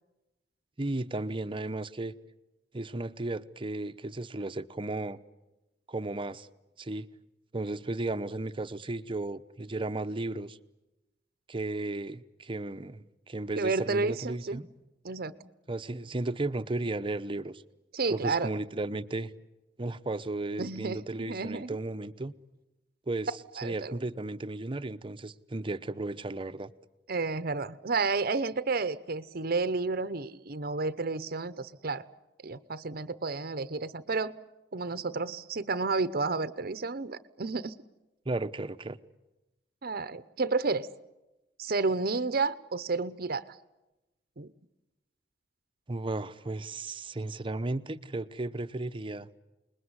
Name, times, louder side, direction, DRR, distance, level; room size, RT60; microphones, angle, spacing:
voice 1, 0.8-2.1 2.7-5.2 5.9-6.5 6.8-7.1 7.5-10.6 11.5-14.7 15.7-17.6 18.1-19.3 19.8-22.3 23.1-23.3 23.6-26.7 38.2-39.0 45.9-49.3, right 2 dB, 30° right, 0.9 m, -34 dB
voice 2, 13.6-14.6 15.0-15.3 17.9-18.5 20.6-21.8 23.6-24.0 27.1-32.0 32.4-34.3 34.7-37.7 39.8-40.9 41.6-43.6 44.4-44.5, right 3 dB, 55° right, 0.9 m, -31 dB
28.5 x 21.0 x 9.7 m
head